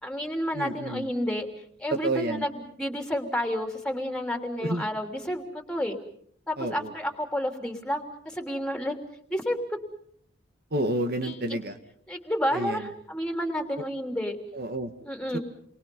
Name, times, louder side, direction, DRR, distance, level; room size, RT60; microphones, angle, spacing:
voice 1, 0.0-1.5 1.8-6.0 6.5-8.9 9.3-9.8 11.2-11.6 12.1-14.4 15.0-15.4, equal, 5° left, 4 dB, 3.2 m, -30 dB
voice 2, 0.5-1.1 1.9-2.4 4.6-4.9 6.6-6.9 10.7-11.8 12.5-12.9 13.8-13.9 14.5-14.9 15.3-15.4, right 1 dB, 55° right, 7 dB, 2.0 m, -30 dB
29.5 x 23.5 x 5.4 m, 0.65 s
head